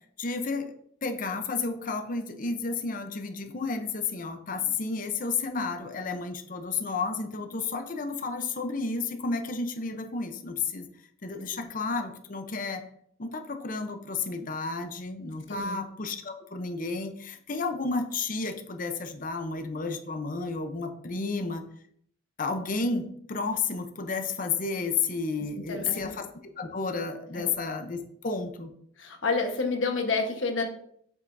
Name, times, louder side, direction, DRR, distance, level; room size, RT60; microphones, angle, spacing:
voice 1, 0.2-0.7 1.0-10.9 11.2-12.8 13.2-21.6 22.4-28.7, left 4 dB, 45° left, 6 dB, 0.7 m, -32 dB
voice 2, 25.5-26.1 27.3-27.5 29.0-30.6, left 4 dB, 90° left, 4 dB, 1.2 m, -29 dB
7.7 x 5.9 x 2.6 m, 0.66 s
head